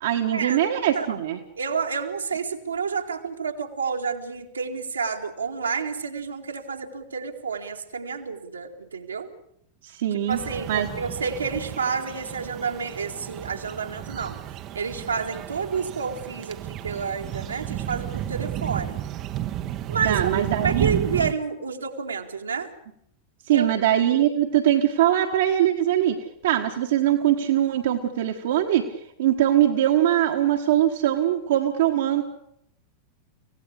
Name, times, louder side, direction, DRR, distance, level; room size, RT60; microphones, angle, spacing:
voice 1, 0.0-1.4 9.8-10.4 10.7-10.9 20.0-20.9 23.5-26.2 26.4-28.8 29.2-32.2, right 12 dB, 55° right, 3 dB, 1.7 m, -22 dB
voice 2, 1.6-9.3 10.3-14.4 14.7-19.0 19.9-22.7 23.5-23.7, right 5 dB, 75° right, 2 dB, 2.3 m, -29 dB
sound 1, 10.3-21.3, right 12 dB, 35° right, 1.1 m, -32 dB
25.5 x 17.0 x 8.5 m, 0.75 s
figure-of-eight pair, 90°, 0 cm